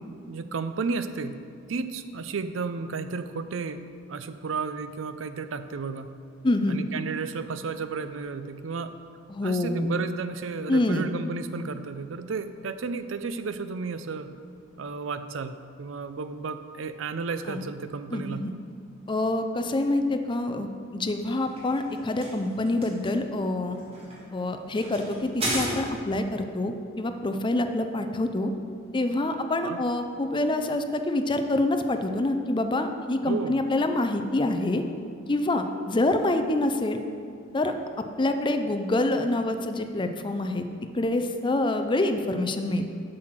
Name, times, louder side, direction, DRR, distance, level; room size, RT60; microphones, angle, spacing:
voice 1, 0.3-1.4 1.7-6.2 6.7-8.9 9.4-14.4 14.8-18.5 29.6-29.8 33.2-33.6, right 4 dB, 80° right, 11 dB, 0.5 m, -33 dB
voice 2, 6.4-6.8 9.3-9.9 10.7-11.1 17.5-17.6 18.1-18.5 19.1-23.8 24.3-28.5 28.9-34.8 35.3-37.0 37.5-37.7 38.2-40.6 40.9-42.9, left 2 dB, 25° left, 7 dB, 0.5 m, -26 dB
sound 1, 21.2-26.3, equal, 30° right, 1.9 m, -35 dB
7.6 x 6.3 x 6.0 m, 2.3 s
head